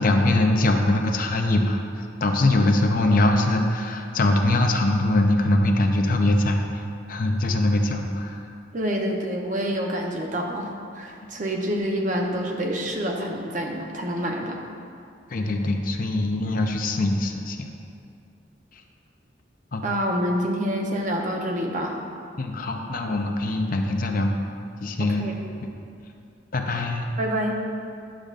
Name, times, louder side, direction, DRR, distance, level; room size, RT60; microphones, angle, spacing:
voice 1, 0.0-1.8 2.2-6.6 7.1-8.4 15.3-17.7 19.7-19.8 22.4-24.3 24.8-25.3 26.5-27.1, left 2 dB, 50° left, 3 dB, 0.6 m, -22 dB
voice 2, 8.7-14.7 19.8-22.0 25.0-25.7 27.2-27.6, equal, 45° right, 0 dB, 0.8 m, -27 dB
10.5 x 6.6 x 2.5 m, 2.4 s
head